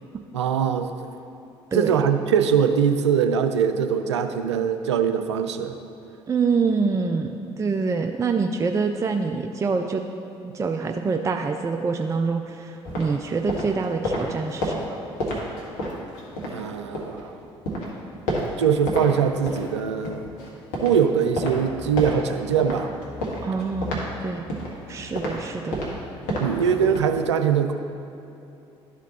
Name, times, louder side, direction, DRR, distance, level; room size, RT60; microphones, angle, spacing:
voice 1, 0.3-0.9 1.7-5.7 16.5-17.3 18.6-20.2 20.8-22.9 26.4-27.7, right 7 dB, 85° right, 8 dB, 0.4 m, -22 dB
voice 2, 6.3-10.0 10.4-15.0 23.4-24.5 24.9-25.8, right 4 dB, 20° right, 5 dB, 0.4 m, -26 dB
sound 1, 12.8-17.2 17.6-19.1 19.4-27.1, equal, 70° left, 1.5 m, -31 dB
12.0 x 4.1 x 4.1 m, 2.8 s
figure-of-eight pair, 50°, 14 cm